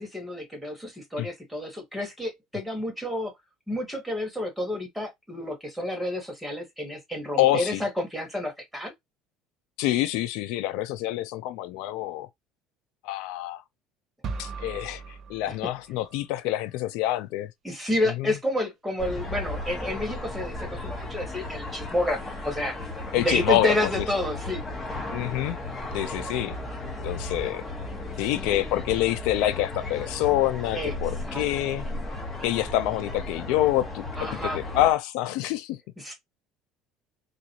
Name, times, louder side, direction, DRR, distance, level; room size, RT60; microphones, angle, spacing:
voice 1, 0.0-3.3 3.7-8.9 15.5-15.6 17.6-22.7 23.1-24.6 28.2-28.7 30.7-30.9 31.2-31.8 34.2-34.6 36.0-36.1, left 1 dB, ahead, 1.5 m, -30 dB
voice 2, 7.4-7.8 9.8-12.3 13.0-13.6 14.4-17.5 18.2-18.4 23.1-23.9 25.1-25.6 25.9-26.6 27.0-27.6 28.2-31.9 32.4-35.8, left 14 dB, 75° left, 0.4 m, -26 dB
sound 1, 14.2-16.3, right 5 dB, 40° right, 0.5 m, -38 dB
sound 2, 19.0-34.9, left 2 dB, 15° left, 1.3 m, -35 dB
3.9 x 2.4 x 2.9 m
cardioid pair, 150°, 0 cm